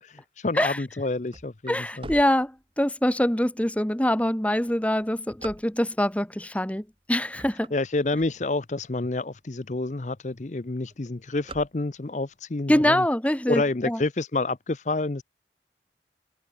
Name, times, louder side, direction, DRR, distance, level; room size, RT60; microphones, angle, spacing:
voice 1, 0.4-2.1 7.7-13.0 13.5-15.2, left 2 dB, 40° left, 0.7 m, -28 dB
sound 1, 1.3-3.1 3.7-3.8 4.4-6.1 6.8-7.0 7.3-8.8 9.3-9.4 9.6-9.7 10.0-10.4 10.6-12.3, right 2 dB, 30° right, 3.1 m, -44 dB
voice 2, 1.7-7.7 12.7-14.0, left 1 dB, 10° left, 1.0 m, -24 dB
head